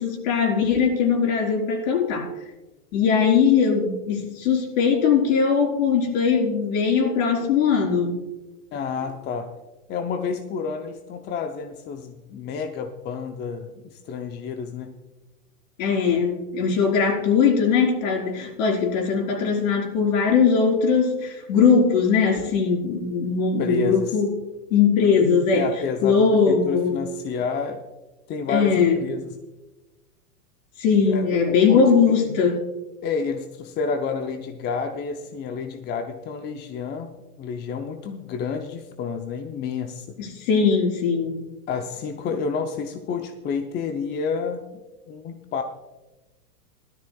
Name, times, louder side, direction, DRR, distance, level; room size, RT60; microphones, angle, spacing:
voice 1, 0.0-2.3 2.9-8.2 15.8-24.3 24.7-25.7 26.0-27.0 28.5-29.0 30.8-32.7 40.2-41.4, left 6 dB, 60° left, 0 dB, 4.3 m, -20 dB
voice 2, 8.7-9.5 9.9-15.0 23.6-24.2 25.5-27.8 28.3-29.4 31.1-32.1 33.0-37.1 37.4-40.2 41.7-44.7 45.1-45.6, left 5 dB, 25° left, 5 dB, 0.6 m, -30 dB
18.0 x 13.0 x 2.3 m, 1.1 s
hypercardioid pair, 120°, 45 cm